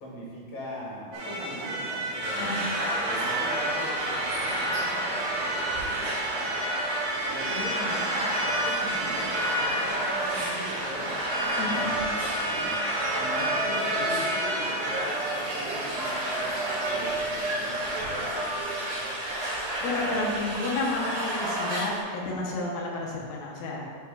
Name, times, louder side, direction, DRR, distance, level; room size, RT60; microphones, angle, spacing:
voice 1, 0.0-2.7 3.0-6.5 7.3-12.8 13.1-15.2 15.5-16.5 16.9-19.2, equal, 55° left, -6 dB, 1.9 m, -40 dB
sound 1, 1.1-18.6, right 1 dB, 65° right, 1.9 m, -33 dB
sound 2, 2.2-22.0, right 1 dB, 85° right, 3.7 m, -30 dB
voice 2, 2.4-2.7 11.6-12.1 19.3-19.5 19.8-23.8, left 2 dB, 75° left, -3 dB, 2.6 m, -31 dB
11.0 x 5.3 x 2.3 m, 2.1 s
omnidirectional pair, 4.4 m